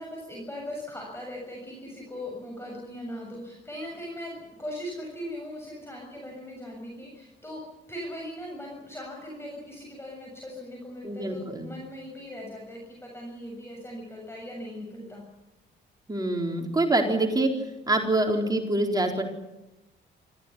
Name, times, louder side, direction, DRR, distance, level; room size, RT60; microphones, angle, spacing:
voice 1, 0.0-7.6 7.9-15.2, left 1 dB, 10° left, -1 dB, 6.8 m, -39 dB
voice 2, 11.0-11.7 16.1-17.5 17.9-19.2, right 2 dB, 20° right, 2 dB, 4.1 m, -25 dB
26.0 x 15.0 x 9.9 m, 0.98 s
cardioid pair, 90°, 20 cm